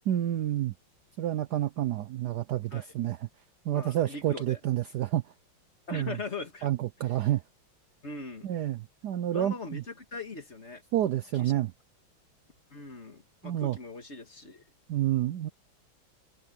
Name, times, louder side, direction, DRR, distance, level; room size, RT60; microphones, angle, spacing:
voice 1, 0.1-0.7 1.2-3.2 3.6-5.3 5.9-6.2 6.6-7.4 8.4-9.8 10.9-11.7 13.4-13.8 14.9-15.5, right 12 dB, 65° right, 1.0 m, -29 dB
voice 2, 3.7-4.6 5.9-6.7 8.0-8.5 9.3-10.8 11.3-11.5 12.7-14.6, left 3 dB, 35° left, 2.1 m, -40 dB
omnidirectional pair, 2.3 m